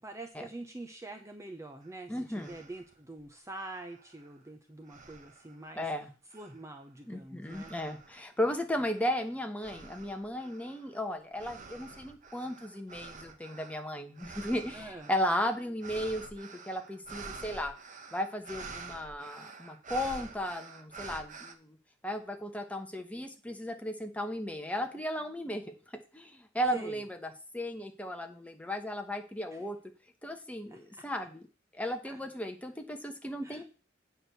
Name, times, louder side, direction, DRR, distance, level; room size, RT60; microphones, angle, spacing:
voice 1, 0.0-5.9 6.3-7.7 14.7-15.1 26.7-27.0 29.5-29.7 30.7-31.1 32.0-32.2 33.4-33.6, right 2 dB, 15° right, 5 dB, 0.8 m, -45 dB
sound 1, 1.8-1.9 2.3-2.9 3.5-4.5 4.9-5.7 6.3-6.8 7.5-8.2 8.8-21.5, right 4 dB, 40° right, 1.1 m, -48 dB
voice 2, 2.1-2.5 5.8-6.1 7.1-17.7 18.1-21.8 22.0-25.6 26.1-29.8 30.2-31.4 31.7-33.6, equal, 5° left, 5 dB, 1.1 m, -35 dB
8.6 x 4.6 x 6.8 m, 0.35 s
head